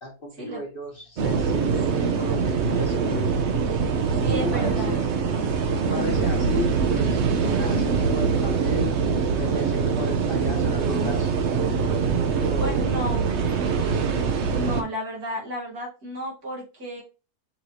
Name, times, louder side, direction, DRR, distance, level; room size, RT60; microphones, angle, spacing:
voice 1, 0.0-3.3 4.2-5.3 5.8-8.9 9.4-11.3 12.4-12.8 13.9-14.1, left 1 dB, 40° left, 1 dB, 1.4 m, -33 dB
sound 1, 1.2-14.8, right 5 dB, 55° right, 0.9 m, -23 dB
voice 2, 4.1-5.0 12.6-13.3 14.5-17.0, equal, 85° right, -2 dB, 2.6 m, -33 dB
5.5 x 3.1 x 2.7 m, 0.31 s
omnidirectional pair, 1.6 m